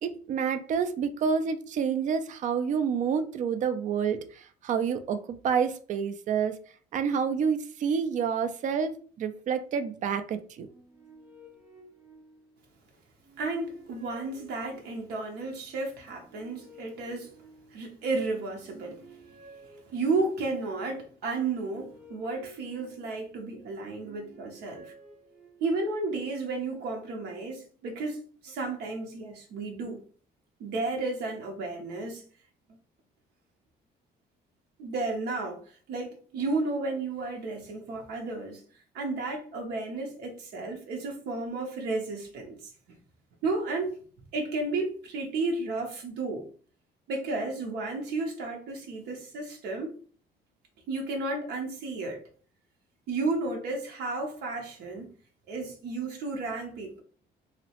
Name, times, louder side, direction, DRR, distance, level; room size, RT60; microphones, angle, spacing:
voice 1, 0.0-6.6 6.9-8.9 9.2-10.7, right 6 dB, 50° right, 0.4 m, -28 dB
sound 1, 10.6-12.7 13.2-15.2 15.9-18.1 18.5-20.6 21.3-23.4 23.9-25.9, right 2 dB, 5° right, 0.6 m, -54 dB
voice 2, 13.4-17.3 17.7-19.0 19.9-24.9 25.6-30.0 30.6-32.2 34.8-35.6 35.9-38.6 38.9-42.6 43.4-44.0 44.3-46.5 47.1-49.9 50.9-52.2 53.1-55.1 55.5-57.0, right 3 dB, 80° right, 0.7 m, -32 dB
2.8 x 2.1 x 2.8 m
cardioid pair, 110°, 17 cm